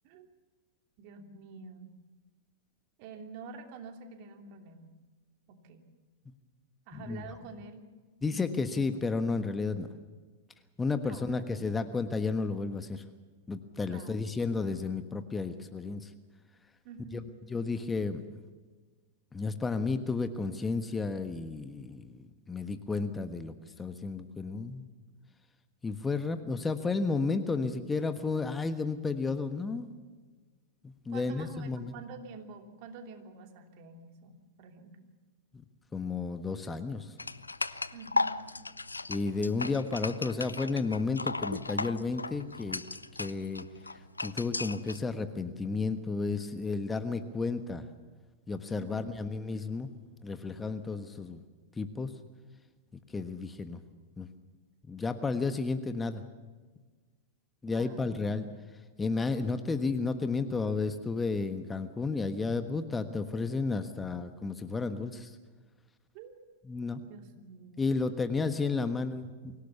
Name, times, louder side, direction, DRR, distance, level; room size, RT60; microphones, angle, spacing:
voice 1, 1.0-1.9 3.0-4.9 5.5-5.9 6.9-7.8 8.2-8.9 11.0-11.7 13.9-14.3 16.8-17.3 31.1-35.1 37.9-38.4 48.8-49.2 57.7-58.3 66.1-66.3 67.1-67.9, right 4 dB, 50° right, 5 dB, 3.0 m, -48 dB
voice 2, 6.9-7.2 8.2-9.9 10.8-13.0 13.5-16.1 17.1-17.2 17.5-18.4 19.3-24.9 25.8-29.9 30.8-32.0 35.9-37.1 39.1-42.8 43.2-43.7 44.2-47.9 48.5-49.9 50.2-51.4 51.8-52.1 53.1-53.8 54.2-54.3 54.9-56.2 57.6-58.5 59.0-65.4 66.7-67.0 67.8-69.5, left 4 dB, 15° left, 9 dB, 1.3 m, -32 dB
sound 1, 37.2-45.0, left 3 dB, 90° left, 0.6 m, -36 dB
24.5 x 17.0 x 7.0 m, 1.4 s
figure-of-eight pair, 95°, 0 cm